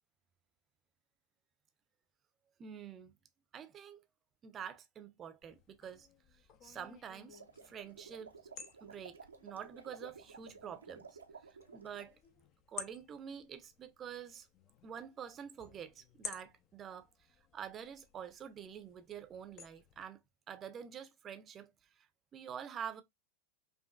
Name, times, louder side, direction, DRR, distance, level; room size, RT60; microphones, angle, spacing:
voice 1, 2.6-3.1 3.5-4.0 4.4-6.1 6.6-8.3 8.8-11.2 11.7-12.2 12.7-14.5 14.8-17.1 17.5-20.2 20.5-21.7 22.3-23.0, right 8 dB, 25° right, 0.6 m, -47 dB
sound 1, 5.4-20.0, left 7 dB, 35° left, 0.6 m, -54 dB
sound 2, 7.2-12.1, right 5 dB, 75° right, 0.5 m, -54 dB
5.2 x 2.5 x 2.3 m
figure-of-eight pair, 90°, 0 cm